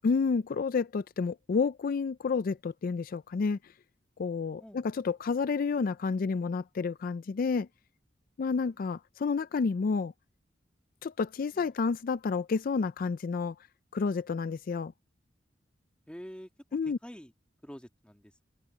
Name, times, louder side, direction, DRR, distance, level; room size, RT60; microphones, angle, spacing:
voice 1, 0.0-3.6 4.2-7.7 8.4-10.1 11.0-13.5 13.9-14.9 16.7-17.0, left 5 dB, 50° left, 0.4 m, -30 dB
voice 2, 8.6-9.0 11.5-11.7 16.1-16.5 16.9-17.3 17.6-18.4, equal, 5° left, 1.7 m, -47 dB
open air
head